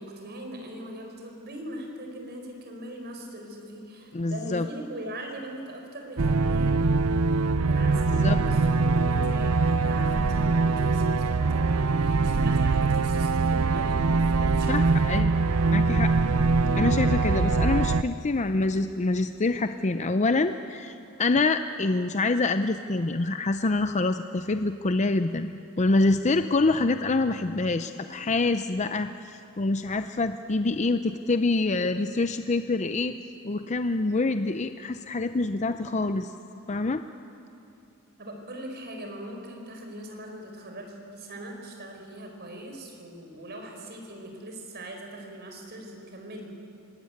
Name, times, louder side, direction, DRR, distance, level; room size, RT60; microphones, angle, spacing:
voice 1, 0.0-6.8 7.6-15.3 38.2-46.5, right 1 dB, 45° right, 2 dB, 4.7 m, -41 dB
voice 2, 4.1-4.7 8.2-8.4 14.7-15.3 15.7-16.1 16.8-25.5 25.8-33.1 33.4-36.3 36.7-37.0, left 3 dB, 30° left, 9 dB, 0.6 m, -26 dB
sound 1, 6.2-18.0, right 4 dB, 70° right, 0.7 m, -23 dB
25.5 x 19.5 x 9.4 m, 2.8 s
head